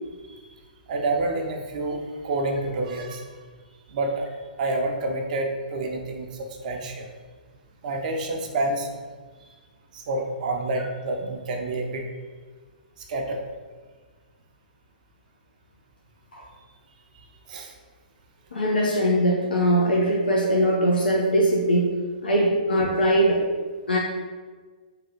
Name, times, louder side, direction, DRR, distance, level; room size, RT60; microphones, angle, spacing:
voice 1, 0.9-3.3 3.9-4.3 4.6-7.1 7.8-8.9 9.9-12.0 13.0-13.4 17.1-17.7, right 2 dB, 55° right, 2 dB, 0.6 m, -28 dB
voice 2, 18.5-21.9 22.2-23.4 23.9-24.0, right 1 dB, 85° left, -3 dB, 0.7 m, -21 dB
3.4 x 2.3 x 4.4 m, 1.4 s
hypercardioid pair, 120°, 5 cm